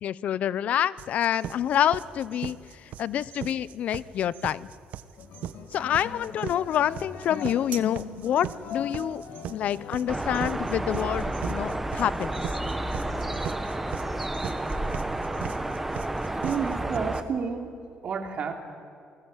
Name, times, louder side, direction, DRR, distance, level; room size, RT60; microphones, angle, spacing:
voice 1, 0.0-2.6 3.0-4.7 5.7-9.2 9.5-12.4, left 10 dB, 60° left, 19 dB, 0.7 m, -27 dB
sound 1, 1.0-17.0, right 10 dB, 70° right, 1.3 m, -38 dB
sound 2, 5.2-10.3, left 6 dB, 75° left, 2.5 m, -40 dB
sound 3, 10.1-17.2, right 1 dB, 10° right, 1.4 m, -30 dB
voice 2, 16.4-17.7 18.0-18.6, right 6 dB, 45° right, 5 dB, 3.0 m, -30 dB
29.0 x 20.0 x 8.9 m, 2.4 s
cardioid pair, 145°, 3 cm